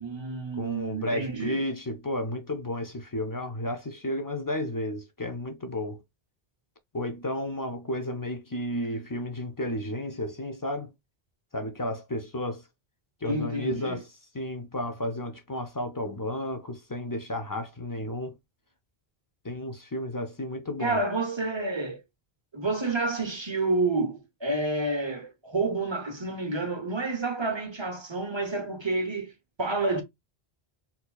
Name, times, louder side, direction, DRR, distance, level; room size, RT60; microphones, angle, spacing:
voice 1, 0.0-1.6 13.2-14.0 20.8-22.0 22.5-29.3 29.6-30.0, right 3 dB, 30° right, 0.6 m, -29 dB
voice 2, 0.6-6.0 6.9-10.9 11.5-12.6 13.2-14.1 14.3-18.3 19.4-21.0, left 1 dB, 25° left, 0.4 m, -32 dB
4.3 x 2.7 x 2.2 m
omnidirectional pair, 1.0 m